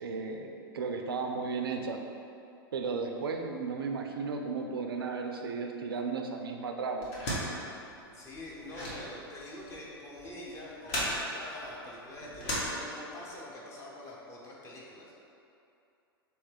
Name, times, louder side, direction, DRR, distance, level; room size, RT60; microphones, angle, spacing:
voice 1, 0.0-2.0 2.7-7.1, right 4 dB, 70° right, 3 dB, 0.4 m, -34 dB
sound 1, 7.0-13.3, equal, 45° left, 1.3 m, -37 dB
voice 2, 8.1-15.1, left 1 dB, 20° left, -5 dB, 0.9 m, -45 dB
3.3 x 3.1 x 4.7 m, 2.7 s
figure-of-eight pair, 100°, 13 cm